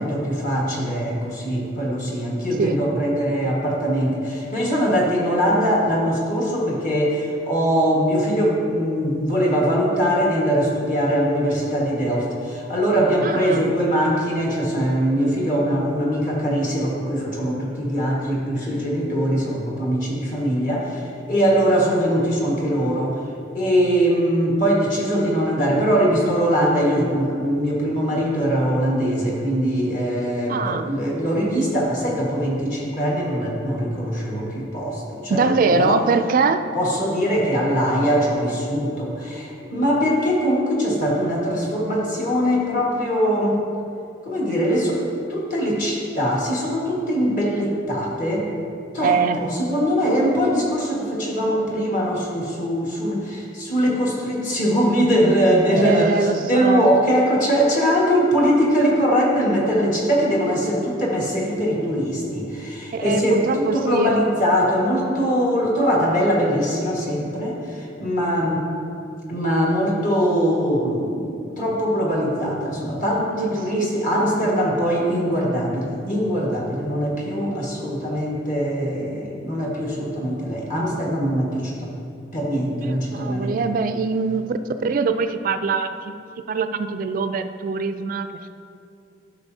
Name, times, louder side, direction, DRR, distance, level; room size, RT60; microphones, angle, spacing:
voice 1, 0.0-23.2 23.5-36.0 36.7-43.6 44.2-48.5 48.9-56.1 56.4-68.6 69.3-81.9 82.3-83.6, equal, 45° left, -3 dB, 1.6 m, -22 dB
voice 2, 13.2-13.6 30.5-30.9 35.3-36.6 49.0-49.4 55.7-56.9 62.9-64.1 73.3-73.9 82.8-84.5 84.8-86.1 86.5-88.3, right 4 dB, 45° right, 9 dB, 0.3 m, -23 dB
11.5 x 6.1 x 2.7 m, 2.5 s
head